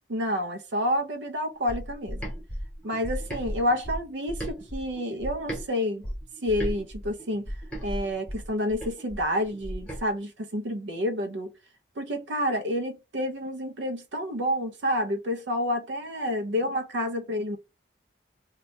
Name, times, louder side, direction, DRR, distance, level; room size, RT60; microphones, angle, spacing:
voice 1, 0.1-2.3 2.8-6.1 6.4-7.5 7.8-11.5 12.0-17.6, left 1 dB, 70° right, 0.5 m, -29 dB
sound 1, 1.7-5.6 6.0-10.0, equal, 5° left, 1.0 m, -35 dB
2.8 x 2.2 x 4.1 m
head